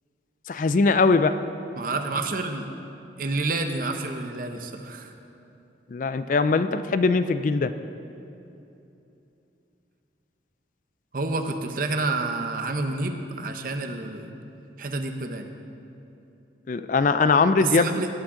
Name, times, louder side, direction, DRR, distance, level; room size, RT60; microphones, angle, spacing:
voice 1, 0.5-1.3 5.9-7.7 16.7-18.0, left 4 dB, 45° left, 11 dB, 0.3 m, -21 dB
voice 2, 1.8-2.7 3.2-5.1 11.1-14.3 14.8-15.5 17.6-18.1, right 3 dB, 50° right, 5 dB, 0.8 m, -29 dB
17.0 x 8.8 x 3.8 m, 2.9 s
head